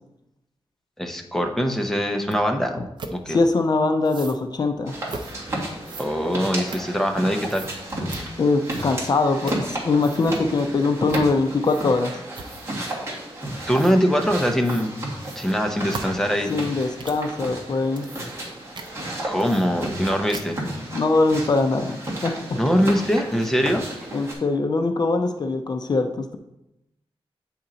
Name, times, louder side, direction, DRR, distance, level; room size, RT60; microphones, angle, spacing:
voice 1, 1.0-2.8 3.1-3.4 6.0-7.7 13.7-14.9 15.4-16.5 19.2-20.6 22.6-23.8, equal, 5° left, 3 dB, 0.7 m, -22 dB
sound 1, 2.3-2.4 3.0-3.2 4.0-4.4 5.1-5.4 5.8-7.2 7.5-7.8 8.1-8.3 8.7-9.1 9.4-9.7 10.0-10.4 11.1-11.3 11.6-12.0 12.3-12.8 13.7-14.0 14.6-14.9 15.2-17.3 17.8-18.5 18.7-18.9 19.4-20.0 20.3-20.7, right 3 dB, 50° right, 0.6 m, -38 dB
voice 2, 3.3-5.0 8.4-12.1 16.5-18.1 20.9-22.6 24.1-26.4, left 3 dB, 45° left, 6 dB, 0.5 m, -22 dB
sound 2, 4.9-24.3, right 1 dB, 30° right, 1.7 m, -33 dB
8.3 x 4.3 x 3.9 m, 0.88 s
wide cardioid pair, 160°, 10 cm